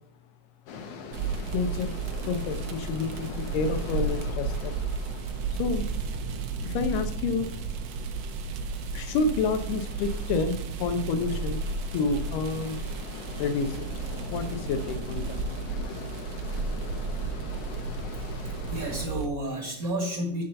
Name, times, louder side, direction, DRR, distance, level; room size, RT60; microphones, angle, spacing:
sound 1, 0.7-19.1, left 5 dB, 65° left, 1.6 m, -43 dB
sound 2, 1.1-19.3, right 4 dB, 70° right, 1.6 m, -33 dB
voice 1, 1.5-2.0 2.3-4.8 5.5-5.9 6.6-7.5 8.9-12.8 13.4-13.9 14.3-15.4, left 4 dB, 90° left, 8 dB, 2.5 m, -29 dB
voice 2, 18.1-20.4, right 1 dB, 40° right, 1 dB, 1.3 m, -32 dB
9.1 x 4.1 x 6.7 m, 0.68 s
omnidirectional pair, 3.7 m